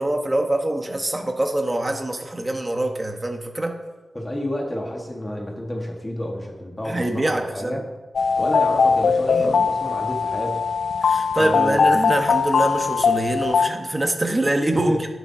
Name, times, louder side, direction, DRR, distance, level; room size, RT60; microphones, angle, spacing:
voice 1, 0.0-3.8 6.8-7.8 9.3-9.7 11.0-15.1, right 1 dB, 20° right, 3 dB, 1.2 m, -24 dB
voice 2, 4.1-7.8 8.4-10.6 11.4-11.8 14.7-15.1, left 1 dB, 15° left, -1 dB, 1.6 m, -29 dB
sound 1, 8.2-13.7, left 5 dB, 90° left, 0.4 m, -20 dB
17.5 x 7.7 x 2.8 m, 1.2 s
wide cardioid pair, 125°, 0 cm